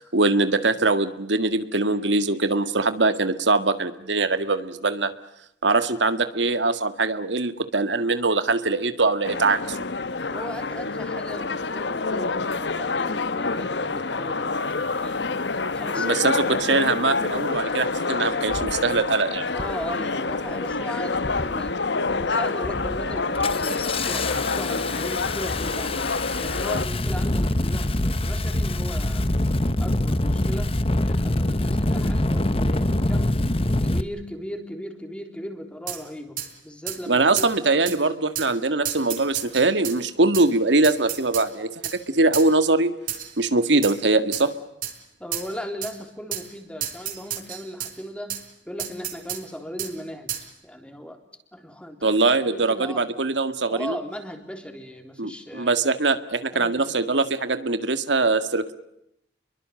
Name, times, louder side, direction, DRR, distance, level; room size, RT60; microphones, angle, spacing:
voice 1, 0.0-5.1 5.6-9.8 16.0-19.5 37.1-41.7 42.1-42.9 43.4-44.5 52.0-54.0 55.2-58.7, right 3 dB, 85° right, 10 dB, 1.8 m, -22 dB
sound 1, 9.2-26.9, left 3 dB, 75° left, 1.2 m, -27 dB
voice 2, 10.3-16.6 19.5-26.1 26.4-29.3 29.8-33.4 33.8-37.5 45.2-48.4 48.7-50.3 50.6-51.2 51.5-52.2 52.4-53.0 53.7-55.8 56.5-57.2, equal, 5° left, 5 dB, 3.7 m, -37 dB
Engine starting, 17.7-17.8 18.5-18.8 19.5-19.8 20.2-20.7 21.2-21.7 22.1-22.3 22.6-34.0, left 1 dB, 30° left, 1.2 m, -25 dB
sound 2, 35.9-36.0 36.4-36.5 36.9-37.0 37.4-37.5 37.9-38.0 38.4-38.5 38.9-40.0 40.3-40.5 40.8-41.5 41.8-42.0 42.3-42.5 43.1-43.4 43.8-44.0 44.3-44.5 44.8-45.0 45.3-45.5 45.8-45.9 46.3-46.5 46.8-47.9 48.3-48.4 48.8-49.4 49.8-49.9 50.3-50.5, right 10 dB, 50° right, 4.6 m, -31 dB
29.5 x 23.0 x 7.7 m, 0.79 s
head